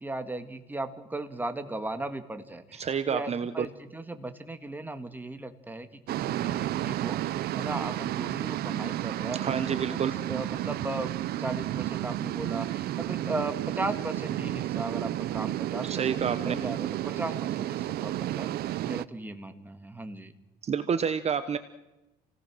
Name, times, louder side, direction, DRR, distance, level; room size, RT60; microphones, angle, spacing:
voice 1, 0.0-9.8 10.3-11.1 11.4-20.3, right 2 dB, 10° right, 8 dB, 2.0 m, -37 dB
voice 2, 2.7-3.7 9.4-10.1 15.8-16.5 20.6-21.6, right 7 dB, 40° right, 11 dB, 1.0 m, -29 dB
sound 1, 6.1-19.1, right 14 dB, 70° right, 0.6 m, -32 dB
29.0 x 18.0 x 6.3 m, 1.0 s
cardioid pair, 110°, 17 cm